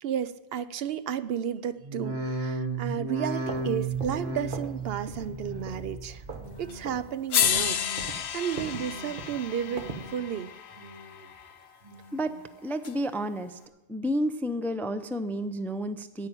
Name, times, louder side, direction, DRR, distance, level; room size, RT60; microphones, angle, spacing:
voice 1, 0.0-6.2 6.6-10.5, right 9 dB, 70° right, 14 dB, 0.8 m, -33 dB
sound 1, 1.8-7.1 7.4-8.1 8.5-9.2 9.6-10.3 10.7-11.4 11.8-12.4 13.0-13.1, right 2 dB, 25° right, 1.4 m, -36 dB
sound 2, 3.3-4.8 5.1-5.4 5.7-6.6 6.8-7.1 7.4-10.1, right 4 dB, 55° right, 1.3 m, -40 dB
sound 3, 6.7-6.8 7.3-11.5 12.8-12.9, left 9 dB, 90° left, 1.0 m, -31 dB
voice 2, 12.6-13.6 13.9-16.3, equal, 5° left, 11 dB, 0.4 m, -30 dB
10.5 x 8.9 x 8.9 m, 1.0 s
omnidirectional pair, 1.1 m